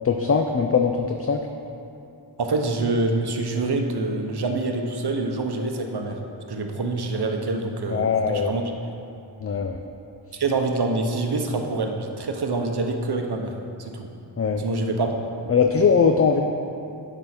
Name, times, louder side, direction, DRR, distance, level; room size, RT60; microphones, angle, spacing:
voice 1, 0.0-1.4 7.9-8.5 9.4-9.8 14.4-14.6 15.5-16.4, left 6 dB, 35° left, 4 dB, 0.4 m, -21 dB
voice 2, 2.4-6.2 6.5-8.1 8.4-8.6 10.3-13.5 13.8-14.1 14.6-15.5, right 3 dB, 60° right, 4 dB, 0.9 m, -26 dB
9.3 x 3.6 x 5.9 m, 2.7 s
wide cardioid pair, 55°, 44 cm